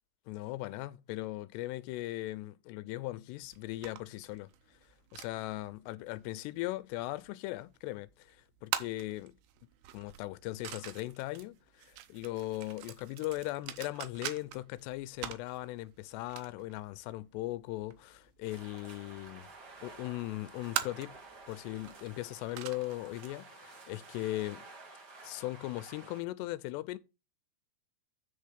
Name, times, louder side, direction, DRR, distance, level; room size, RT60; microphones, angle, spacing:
voice 1, 0.3-4.5 5.1-8.4 8.6-9.4 9.9-19.5 19.8-21.2 21.5-24.7 25.2-27.0, left 17 dB, 85° left, 2.7 m, -39 dB
sound 1, 3.4-23.3, right 12 dB, 80° right, 2.8 m, -45 dB
sound 2, 18.4-26.2, right 3 dB, 65° right, 1.0 m, -52 dB
8.2 x 5.4 x 5.1 m
omnidirectional pair, 4.8 m